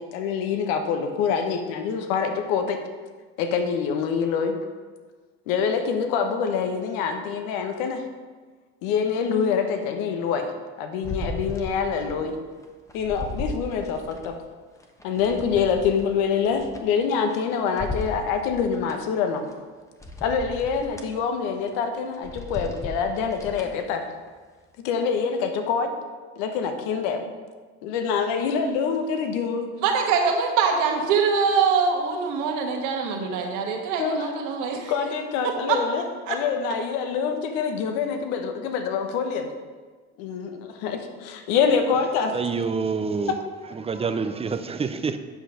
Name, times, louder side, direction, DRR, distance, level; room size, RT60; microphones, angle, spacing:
voice 1, 0.0-2.8 3.4-4.6 5.5-8.0 8.8-10.5 10.8-12.4 12.9-14.4 15.0-19.5 20.2-24.0 24.8-25.9 26.4-27.2 27.8-29.7 34.0-34.3 34.9-39.5 40.2-42.3, left 6 dB, 75° left, 1.1 m, -25 dB
sound 1, 11.0-12.2 12.6-14.3 14.8-17.4 17.8-19.0 19.5-19.6 20.0-21.1 21.6-21.8 22.1-23.8 24.3-24.4, left 2 dB, 10° left, 1.1 m, -36 dB
voice 2, 29.8-34.9 35.4-35.8 36.3-36.4, right 5 dB, 65° right, 1.5 m, -23 dB
voice 3, 42.3-43.3 43.7-45.2, right 5 dB, 20° right, 0.5 m, -27 dB
8.0 x 5.8 x 5.0 m
supercardioid pair, 90°, 33 cm